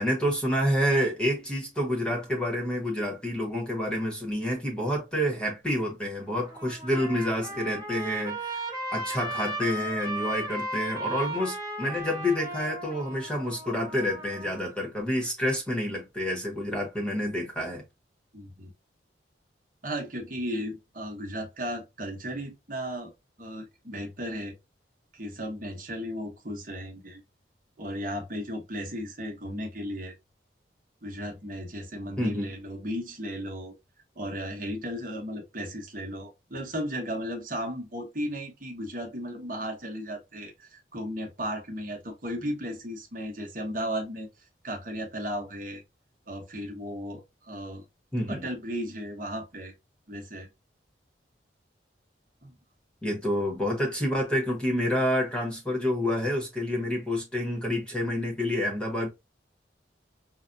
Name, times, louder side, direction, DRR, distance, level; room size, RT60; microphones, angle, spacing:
voice 1, 0.0-8.6 8.9-17.8 32.2-32.5 48.1-48.4 53.0-59.1, equal, 5° left, 1.1 m, -28 dB
Trumpet, 6.2-14.6, right 1 dB, 20° right, 1.0 m, -36 dB
voice 2, 18.3-18.7 19.8-23.1 23.4-24.5 25.1-27.2 27.8-30.1 31.0-33.7 34.2-44.3 44.6-45.8 46.3-47.8 48.3-49.7 50.1-50.5 52.4-52.5, equal, 45° right, 1.0 m, -35 dB
5.5 x 2.2 x 2.6 m
head